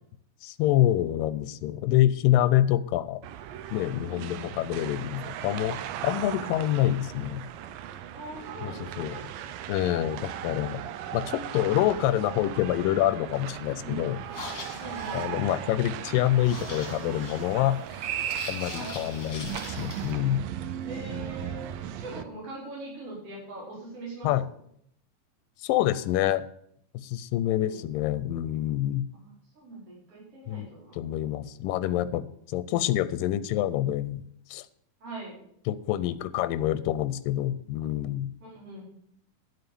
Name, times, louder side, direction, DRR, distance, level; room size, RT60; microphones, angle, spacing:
voice 1, 0.4-3.2 3.7-5.8 6.0-7.4 8.6-9.1 9.7-10.8 11.1-14.2 15.1-17.8 18.5-20.4 24.2-24.5 25.6-26.4 27.0-29.0 30.5-34.2 34.5-34.7 35.7-38.3, left 13 dB, 85° left, 15 dB, 2.3 m, -26 dB
sound 1, 3.2-22.2, right 10 dB, 90° right, 2.4 m, -37 dB
voice 2, 4.1-4.5 8.1-9.3 13.8-14.1 14.8-15.6 18.7-19.0 20.8-21.7 21.9-24.3 27.6-27.8 29.1-31.0 35.0-35.4 38.4-38.8, right 1 dB, 40° right, -6 dB, 5.8 m, -42 dB
sound 2, 14.2-20.2, left 4 dB, 55° left, 3.4 m, -43 dB
11.5 x 7.9 x 6.9 m, 0.69 s
omnidirectional pair, 3.9 m